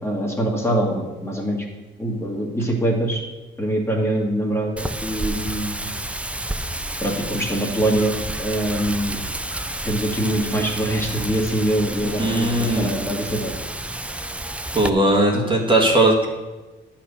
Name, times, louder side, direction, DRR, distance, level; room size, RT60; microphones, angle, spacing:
voice 1, 0.0-1.7 2.0-3.2 3.6-5.9 7.0-9.2 9.8-13.5, right 1 dB, 10° left, -1 dB, 1.9 m, -24 dB
Wind, 4.8-14.9, right 1 dB, 5° right, 0.5 m, -30 dB
voice 2, 12.2-12.9 14.7-16.3, right 1 dB, 25° right, -1 dB, 1.7 m, -18 dB
11.0 x 4.4 x 7.0 m, 1.2 s
cardioid pair, 90°, 20 cm